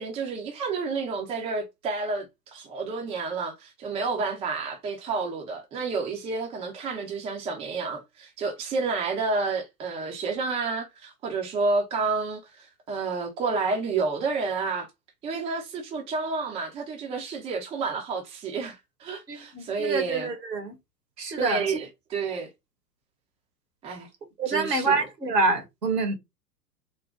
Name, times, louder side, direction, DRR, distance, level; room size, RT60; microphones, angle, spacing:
voice 1, 0.0-14.9 15.2-20.3 21.4-22.5 23.8-24.1 24.5-25.1, right 4 dB, 10° right, 0.7 m, -30 dB
voice 2, 19.3-20.8 21.2-21.6 24.4-26.1, right 3 dB, 80° right, 1.5 m, -26 dB
3.9 x 2.2 x 3.4 m
figure-of-eight pair, 100°, 48 cm